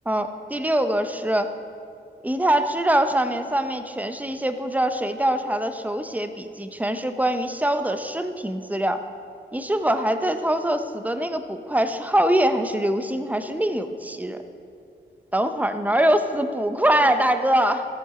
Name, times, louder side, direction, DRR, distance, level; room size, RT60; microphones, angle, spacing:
voice 1, 0.1-1.5 2.2-9.0 9.5-14.4 15.3-17.9, right 1 dB, 10° right, 8 dB, 0.8 m, -23 dB
14.0 x 7.2 x 4.9 m, 2.4 s
cardioid pair, 65°, 19 cm